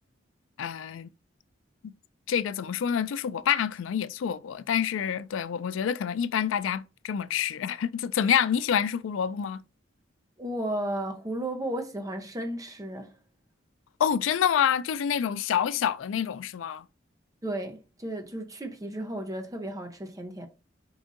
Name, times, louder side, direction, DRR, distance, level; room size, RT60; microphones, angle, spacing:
voice 1, 0.6-1.1 1.8-1.9 2.3-9.6 14.0-16.8, left 8 dB, 80° left, 0.3 m, -27 dB
voice 2, 10.4-13.2 17.4-20.5, right 1 dB, 20° right, 0.7 m, -34 dB
4.8 x 2.6 x 3.7 m
head